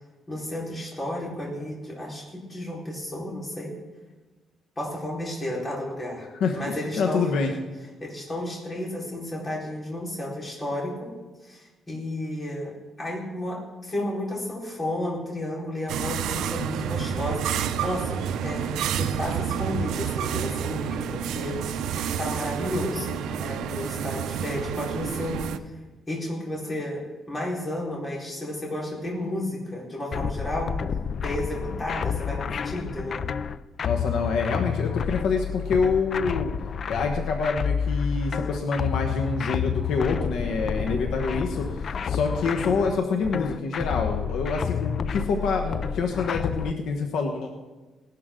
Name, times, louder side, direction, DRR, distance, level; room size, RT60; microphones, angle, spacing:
voice 1, 0.3-3.7 4.8-6.3 6.5-7.3 8.0-11.1 11.4-12.7 13.0-21.8 22.2-25.7 26.1-27.0 27.3-30.7 31.2-33.2 40.9-41.1, left 1 dB, 20° left, -4 dB, 4.3 m, -32 dB
voice 2, 6.4-7.5 33.8-36.5 36.9-47.5, left 4 dB, 75° left, 2 dB, 1.3 m, -26 dB
sound 1, 15.9-25.6, right 8 dB, 85° right, 0.7 m, -29 dB
sound 2, 30.1-46.7, left 7 dB, 40° left, 0.4 m, -29 dB
18.5 x 12.0 x 3.8 m, 1.2 s
cardioid pair, 155°, 0 cm